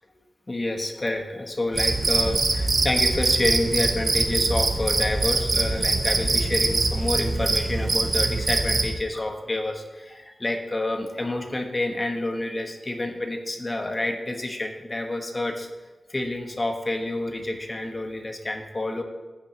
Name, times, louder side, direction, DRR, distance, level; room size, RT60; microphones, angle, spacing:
voice 1, 0.5-15.7 16.1-19.0, left 2 dB, 40° left, 3 dB, 1.4 m, -28 dB
Cricket, 1.7-8.9, right 3 dB, 65° right, 1.0 m, -23 dB
15.0 x 5.7 x 3.0 m, 1.2 s
cardioid pair, 40°, 0 cm